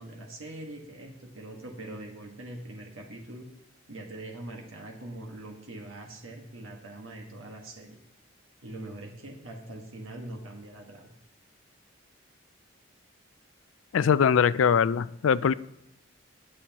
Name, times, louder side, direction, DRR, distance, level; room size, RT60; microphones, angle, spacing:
voice 1, 0.0-3.5 3.9-8.0 8.6-11.1, right 1 dB, 80° right, 1 dB, 1.5 m, -42 dB
voice 2, 13.9-15.5, left 7 dB, 75° left, 16 dB, 0.4 m, -22 dB
19.5 x 7.7 x 2.9 m, 0.85 s
head